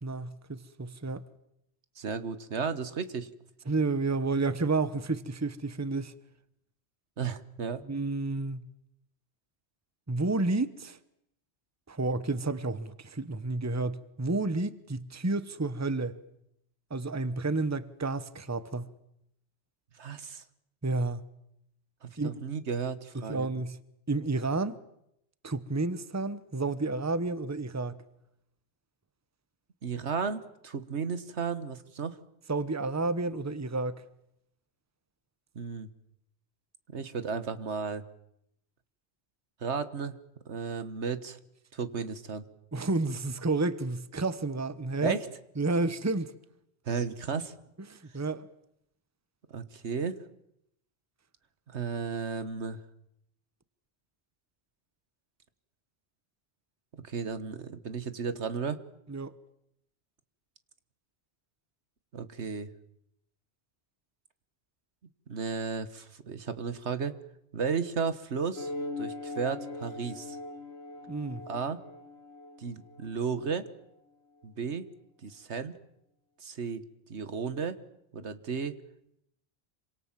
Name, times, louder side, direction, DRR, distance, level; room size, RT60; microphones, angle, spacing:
voice 1, 0.0-1.2 3.7-6.1 7.8-8.6 10.1-11.0 11.9-16.2 16.9-18.9 20.8-21.2 22.2-22.4 23.2-23.8 24.1-24.8 25.4-28.0 32.5-34.0 42.7-45.2 45.6-46.3 47.9-48.5 59.1-59.3 71.1-71.4, right 3 dB, 15° right, 1.0 m, -30 dB
voice 2, 2.0-3.3 7.2-7.8 20.0-20.4 22.0-23.5 29.8-32.2 35.5-35.9 36.9-38.0 39.6-40.2 40.4-41.4 41.7-42.4 45.0-45.3 46.8-47.5 49.5-50.2 51.7-52.8 56.9-58.8 62.1-62.7 65.3-67.1 67.5-68.7 69.0-70.4 71.5-71.8 72.6-73.7 74.4-74.9 75.2-75.7 76.4-76.8 77.1-77.8 78.1-78.8, right 5 dB, 85° right, 1.7 m, -34 dB
sound 1, 68.6-73.5, left 2 dB, 70° left, 2.3 m, -41 dB
27.0 x 25.5 x 7.5 m
omnidirectional pair, 1.1 m